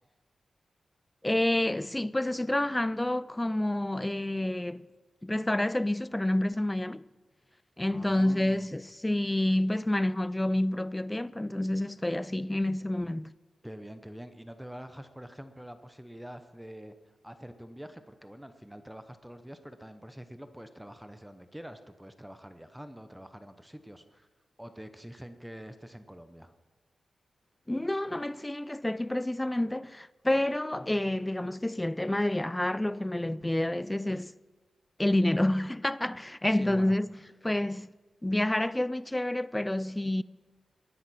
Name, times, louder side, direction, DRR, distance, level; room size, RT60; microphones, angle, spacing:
voice 1, 1.2-4.9 5.2-7.1 7.8-13.3 27.7-34.3 35.0-37.1 37.4-37.9 38.2-40.2, left 1 dB, 10° left, 0.4 m, -28 dB
voice 2, 7.9-8.7 13.6-16.9 17.2-24.3 24.6-26.5 36.5-37.0, equal, 5° right, 0.8 m, -46 dB
20.0 x 11.0 x 4.3 m
wide cardioid pair, 105°, 0 cm